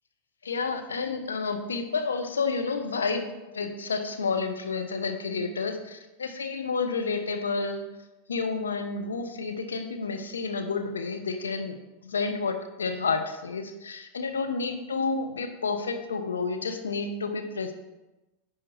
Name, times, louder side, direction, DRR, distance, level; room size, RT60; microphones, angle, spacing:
voice 1, 0.4-3.3 3.5-7.8 8.3-11.8 12.0-17.7, left 4 dB, 80° left, 6 dB, 0.9 m, -30 dB
9.9 x 5.2 x 4.5 m, 1.0 s
figure-of-eight pair, 90°, 0 cm